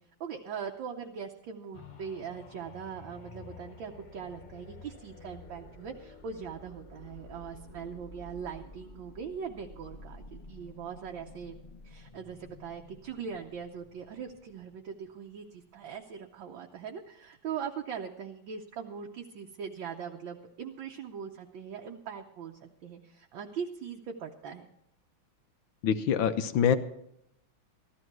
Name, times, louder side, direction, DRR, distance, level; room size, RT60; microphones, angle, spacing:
voice 1, 0.2-11.6 11.8-24.7, right 7 dB, 70° right, 1 dB, 1.6 m, -41 dB
sound 1, 1.7-15.4 15.9-16.0, left 3 dB, 40° left, 0.6 m, -51 dB
voice 2, 25.8-26.8, left 8 dB, 70° left, 10 dB, 1.4 m, -25 dB
14.5 x 13.0 x 4.6 m, 0.76 s
omnidirectional pair, 2.3 m